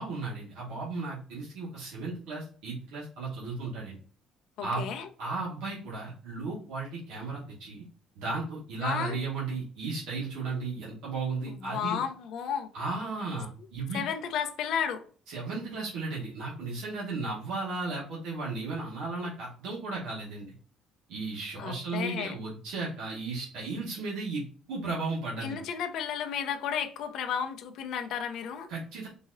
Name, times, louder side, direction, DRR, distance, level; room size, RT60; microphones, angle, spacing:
voice 1, 0.0-4.0 4.6-4.8 5.2-7.8 8.1-12.0 12.7-14.0 15.3-20.5 21.1-24.4 24.7-25.6 28.7-29.1, right 3 dB, 85° right, 1.4 m, -35 dB
voice 2, 4.6-5.1 8.8-9.2 11.5-12.7 13.9-15.0 21.6-22.4 25.4-28.7, left 8 dB, 65° left, 0.5 m, -33 dB
4.0 x 2.8 x 2.5 m
cardioid pair, 140°, 0 cm